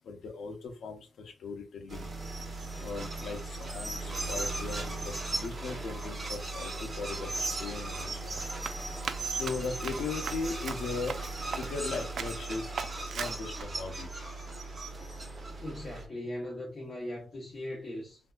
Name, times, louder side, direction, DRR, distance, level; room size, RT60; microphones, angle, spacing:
voice 1, 0.0-2.1 2.8-8.4 9.3-12.6 13.1-14.1, left 4 dB, 85° left, 0.7 m, -38 dB
sound 1, 1.9-16.1, right 2 dB, 35° right, 1.0 m, -37 dB
Run, 8.3-11.9 12.2-12.4 12.8-13.6, right 6 dB, 70° right, 0.4 m, -39 dB
voice 2, 15.6-18.2, left 1 dB, 50° left, 1.0 m, -39 dB
3.5 x 2.6 x 2.3 m
cardioid pair, 110°, 0 cm